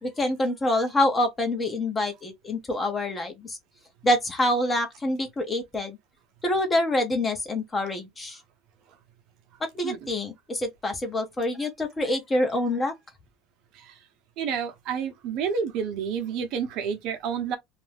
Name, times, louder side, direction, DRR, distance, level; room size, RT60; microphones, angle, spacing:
voice 1, 0.0-3.6 4.0-6.0 6.4-8.4 9.7-12.9, left 1 dB, 20° left, 0.7 m, -26 dB
voice 2, 14.4-17.6, right 7 dB, 60° right, 0.8 m, -30 dB
2.5 x 2.2 x 3.3 m
supercardioid pair, 120°, 0 cm